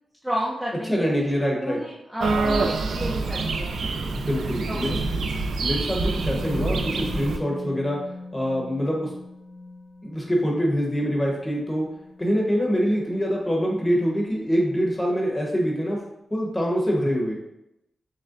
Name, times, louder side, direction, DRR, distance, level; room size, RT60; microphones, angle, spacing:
voice 1, 0.2-3.9 4.7-5.0, equal, 5° right, -6 dB, 0.5 m, -32 dB
voice 2, 0.9-1.8 4.1-4.9 5.6-8.0 8.3-9.1 10.0-11.9 12.2-16.0 16.3-17.4, equal, 15° left, -2 dB, 0.9 m, -24 dB
sound 1, 2.2-7.4, right 3 dB, 75° right, 0.3 m, -26 dB
Musical instrument, 6.4-14.3 14.5-14.7, left 2 dB, 40° left, 0.6 m, -41 dB
6.3 x 2.1 x 2.5 m, 0.85 s
wide cardioid pair, 140°, 0 cm